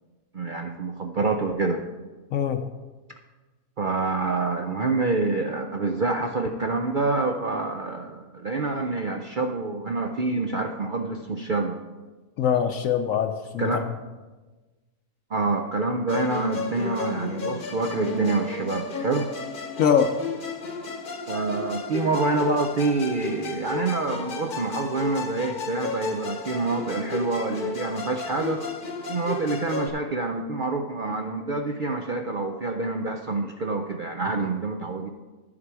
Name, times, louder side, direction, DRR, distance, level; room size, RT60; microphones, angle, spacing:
voice 1, 0.3-1.8 3.8-11.8 13.6-13.8 15.3-19.3 21.3-28.6 29.1-35.1, right 3 dB, 70° right, 4 dB, 0.4 m, -27 dB
voice 2, 2.3-2.7 12.4-13.7 19.8-20.1, left 8 dB, 65° left, 7 dB, 0.9 m, -23 dB
Musical instrument, 16.1-29.9, left 4 dB, 40° left, 0.9 m, -33 dB
12.0 x 7.4 x 4.7 m, 1.2 s
omnidirectional pair, 1.6 m